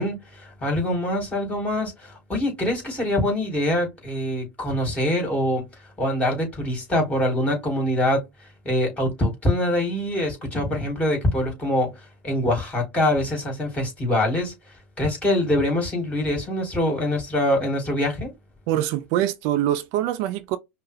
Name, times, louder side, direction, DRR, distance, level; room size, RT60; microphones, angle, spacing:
voice 1, 0.0-5.7 6.0-8.2 8.6-11.9 12.2-14.5 15.0-18.3, left 1 dB, 15° left, 3.2 m, -24 dB
voice 2, 18.7-20.6, right 12 dB, 55° right, 0.5 m, -24 dB
5.4 x 2.2 x 3.5 m
hypercardioid pair, 90°, 7 cm